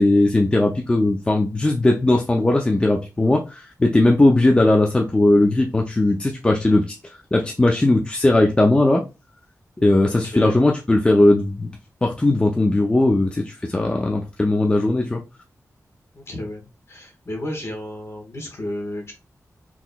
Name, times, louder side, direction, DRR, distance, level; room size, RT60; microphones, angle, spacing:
voice 1, 0.0-6.9 7.3-9.0 9.8-11.7 12.0-15.2, left 2 dB, 15° left, 0.4 m, -18 dB
voice 2, 10.0-10.5 16.1-19.1, left 1 dB, 50° left, 1.3 m, -32 dB
3.8 x 2.9 x 2.2 m
wide cardioid pair, 135°, 6 cm